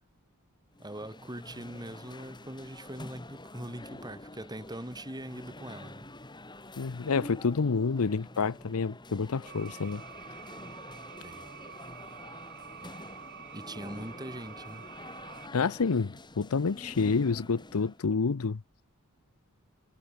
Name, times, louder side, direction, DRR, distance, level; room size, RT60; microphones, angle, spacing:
sound 1, 0.7-18.0, left 1 dB, 20° left, 6.7 m, -47 dB
voice 1, 0.8-6.1 11.2-11.5 13.5-14.9, right 1 dB, 20° right, 5.4 m, -42 dB
voice 2, 6.8-10.0 15.5-18.6, left 4 dB, 80° left, 0.7 m, -28 dB
sound 2, 9.5-15.5, right 7 dB, 50° right, 7.9 m, -47 dB
head